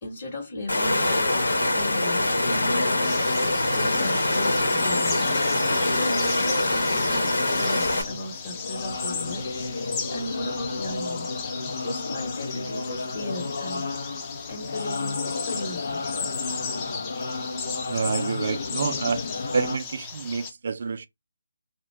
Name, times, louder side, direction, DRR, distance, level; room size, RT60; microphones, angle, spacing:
voice 1, 0.0-1.4 1.7-3.1 3.4-5.3 5.9-9.5 10.1-11.3 11.8-13.8 14.5-16.3, left 1 dB, 35° left, 0.9 m, -36 dB
Water, 0.7-8.0, left 2 dB, 85° left, 1.0 m, -24 dB
sound 1, 1.3-19.8, left 3 dB, 70° left, 0.5 m, -33 dB
sound 2, 3.0-20.5, left 6 dB, 20° left, 0.4 m, -37 dB
voice 2, 17.9-19.3 19.5-21.1, right 5 dB, 55° right, 0.3 m, -28 dB
2.5 x 2.2 x 3.1 m
hypercardioid pair, 160°, 0 cm